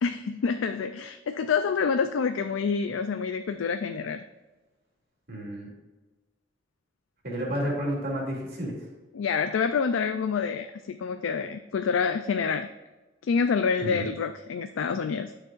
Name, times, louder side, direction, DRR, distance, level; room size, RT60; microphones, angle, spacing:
voice 1, 0.0-4.2 9.1-12.7 13.2-15.3, left 5 dB, 85° left, 8 dB, 0.4 m, -27 dB
voice 2, 5.3-5.7 7.2-8.7 13.8-14.1, equal, 55° right, -3 dB, 2.7 m, -31 dB
11.5 x 6.5 x 2.5 m, 1.2 s
head